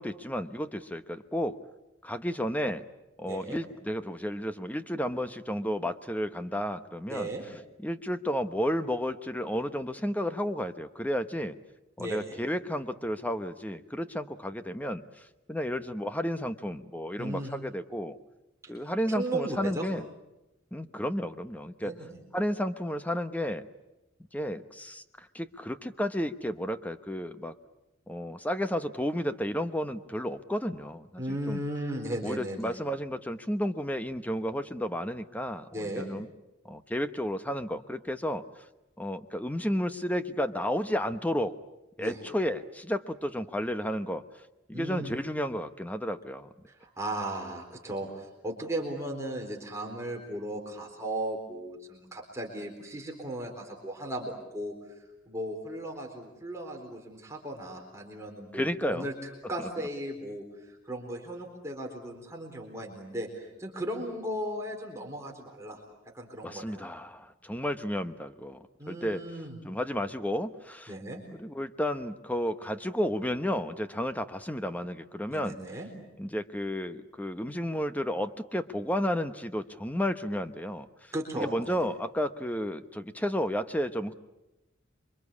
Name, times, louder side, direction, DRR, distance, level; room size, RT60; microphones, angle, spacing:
voice 1, 0.0-1.6 2.0-2.8 3.2-7.3 7.8-11.6 12.0-18.2 18.7-20.0 20.7-21.9 22.3-23.7 24.3-27.6 28.1-31.6 32.2-36.3 36.6-38.4 39.0-41.5 42.0-44.2 44.7-46.5 58.5-59.1 59.6-59.7 66.4-69.2 69.6-70.9 71.3-75.6 76.2-81.1 81.4-84.1, equal, 10° left, 10 dB, 1.0 m, -32 dB
voice 2, 3.3-3.6 7.1-7.4 12.0-12.4 17.2-17.5 18.6-18.7 19.1-19.9 21.8-22.2 31.2-32.8 35.7-36.1 42.0-42.2 44.7-45.1 46.7-65.8 66.1-66.8 68.8-69.6 70.9-71.2 75.3-75.9 81.1-81.8, right 1 dB, 15° right, 0 dB, 4.0 m, -36 dB
28.0 x 24.0 x 8.5 m, 0.96 s
head